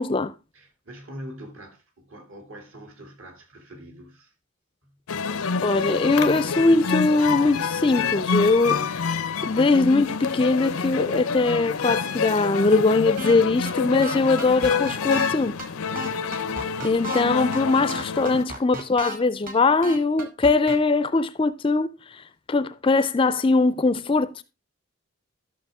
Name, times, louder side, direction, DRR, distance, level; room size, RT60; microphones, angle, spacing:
voice 1, 0.0-0.3 5.6-9.1 9.4-15.6 16.8-24.4, left 3 dB, 25° left, 0.4 m, -21 dB
voice 2, 0.5-4.3 4.8-4.9, equal, 70° right, 2.6 m, -43 dB
sound 1, 5.1-18.4, left 5 dB, 85° left, 0.6 m, -27 dB
sound 2, 13.2-13.4 13.6-13.7 14.0-15.3 15.6-15.7 15.9-17.2 17.5-17.6 17.9-19.2 19.5-19.6 19.8-20.8, right 2 dB, 40° right, 1.5 m, -33 dB
12.5 x 6.4 x 3.5 m
head